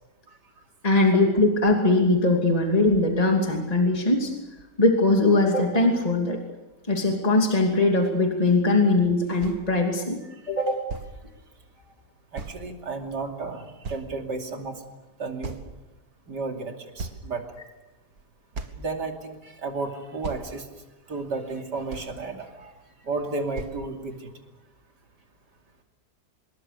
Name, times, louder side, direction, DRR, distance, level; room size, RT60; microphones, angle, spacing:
voice 1, 0.8-4.3 4.8-6.4 6.9-10.2 10.5-10.7, left 2 dB, 20° left, 1 dB, 2.8 m, -21 dB
sound 1, 9.1-9.2 9.4-9.6 10.5-10.6 10.9-11.1 12.4-12.6 13.2-13.3 13.8-14.4 15.4-16.0 16.5-16.6 17.0-17.6 18.2-18.3 18.5-18.9 19.8-19.9 20.2-20.5 21.5-21.6 21.9-22.2 23.2-23.3 23.6-23.8, right 4 dB, 65° right, 2.3 m, -37 dB
voice 2, 12.3-14.8 15.2-15.6 16.3-17.4 18.8-20.7 21.1-22.7 23.0-24.3, right 3 dB, 90° right, 3 dB, 3.4 m, -32 dB
26.0 x 22.0 x 6.8 m, 1.1 s
omnidirectional pair, 1.8 m